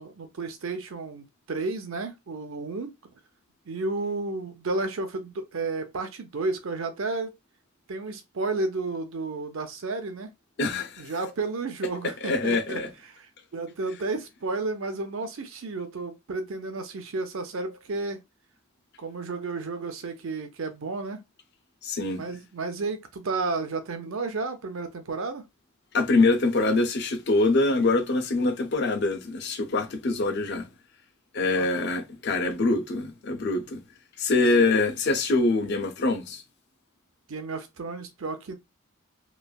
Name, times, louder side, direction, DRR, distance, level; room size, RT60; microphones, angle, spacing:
voice 1, 0.0-2.9 3.7-7.4 7.9-10.3 11.0-12.8 13.1-13.3 13.5-18.2 19.0-21.2 22.1-25.4 31.5-31.7 34.3-34.7 37.3-38.6, right 3 dB, 65° right, 0.6 m, -32 dB
voice 2, 10.6-11.3 12.2-12.9 21.8-22.3 25.9-30.7 31.3-33.8 34.2-36.4, left 3 dB, 50° left, 0.5 m, -24 dB
3.1 x 2.5 x 2.2 m
head